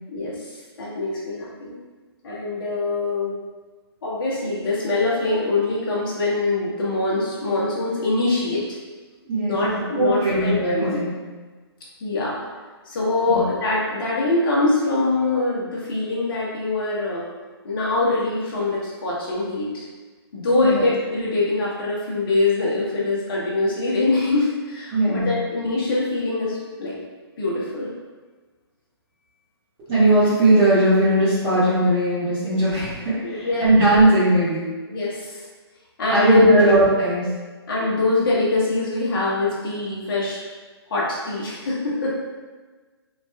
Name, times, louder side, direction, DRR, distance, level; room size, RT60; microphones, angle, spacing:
voice 1, 0.1-1.7 2.2-3.3 4.0-8.8 9.4-11.0 12.0-12.4 12.8-17.2 17.6-19.8 20.3-27.0 27.4-27.9 33.2-33.6 34.8-35.4 36.0-36.6 37.7-40.4 40.9-42.1, left 2 dB, 55° left, -6 dB, 1.1 m, -23 dB
voice 2, 9.2-11.1 13.3-13.4 20.6-20.8 24.9-25.3 29.9-34.6 36.1-37.3, right 1 dB, 25° right, -15 dB, 1.2 m, -19 dB
3.2 x 2.9 x 2.2 m, 1.3 s
hypercardioid pair, 140°, 14 cm